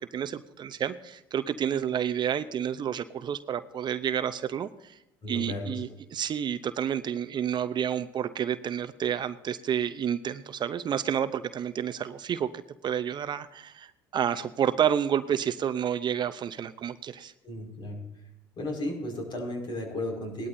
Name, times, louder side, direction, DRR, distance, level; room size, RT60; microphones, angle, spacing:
voice 1, 0.1-5.0 5.3-17.3, right 9 dB, 45° right, 11 dB, 0.7 m, -30 dB
voice 2, 5.2-5.8 17.4-18.0 18.6-20.5, left 1 dB, 45° left, 1 dB, 5.4 m, -34 dB
18.5 x 12.5 x 2.7 m, 0.94 s
hypercardioid pair, 75°, 11 cm